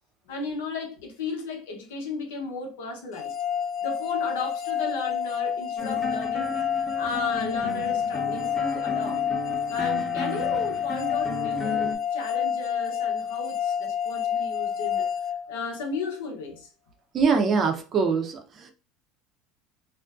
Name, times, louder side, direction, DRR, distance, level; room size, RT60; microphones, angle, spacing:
voice 1, 0.3-3.3 3.8-6.6 7.0-9.2 9.7-15.1 15.5-16.7, left 3 dB, 80° left, 0.7 m, -35 dB
sound 1, 3.2-16.1, left 8 dB, 50° left, 0.5 m, -29 dB
sound 2, 5.8-12.0, left 2 dB, 15° left, 0.7 m, -34 dB
voice 2, 17.1-18.7, right 5 dB, 40° right, 0.6 m, -23 dB
2.5 x 2.1 x 2.3 m
hypercardioid pair, 90°, 0 cm